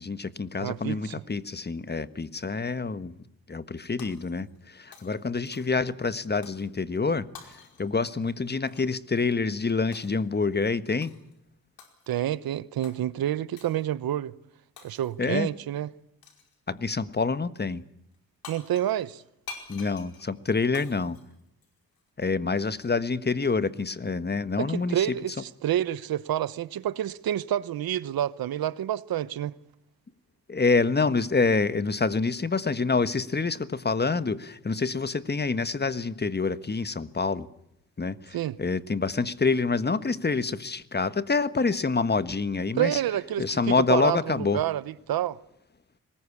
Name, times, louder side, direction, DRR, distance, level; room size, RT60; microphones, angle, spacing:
voice 1, 0.0-3.1 3.5-11.1 15.2-15.5 16.7-17.8 19.7-21.2 22.2-25.1 30.5-37.5 38.0-43.0 43.4-44.6, left 4 dB, 30° left, 1.4 m, -27 dB
voice 2, 0.6-1.1 12.1-14.3 14.8-15.9 18.5-19.2 24.6-29.5 38.3-38.6 42.8-45.4, right 12 dB, 85° right, 0.9 m, -28 dB
Shatter, 4.0-4.7 4.9-5.9 6.4-6.7 7.3-8.9 9.9-10.3 11.0-11.3 11.8-12.3 12.8-13.0 13.6-13.8 14.8-15.3 16.2-16.6 18.1-18.2 18.4-22.0, left 5 dB, 85° left, 5.0 m, -48 dB
23.0 x 20.5 x 8.5 m
cardioid pair, 60°, 35 cm